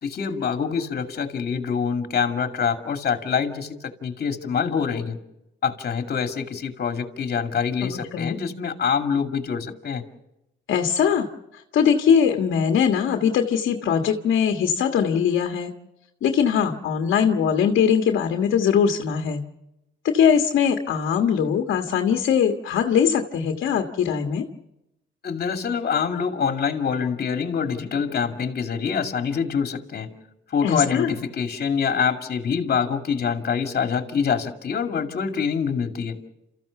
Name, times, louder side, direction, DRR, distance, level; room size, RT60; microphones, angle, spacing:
voice 1, 0.0-5.2 5.6-10.0 25.2-30.1 30.5-36.2, left 6 dB, 50° left, 5 dB, 2.4 m, -25 dB
voice 2, 7.8-8.4 10.7-11.3 11.7-15.7 16.2-19.4 20.0-24.4 30.6-31.1, left 7 dB, 75° left, 4 dB, 1.6 m, -21 dB
29.0 x 14.5 x 7.0 m, 0.89 s
cardioid pair, 90°, 20 cm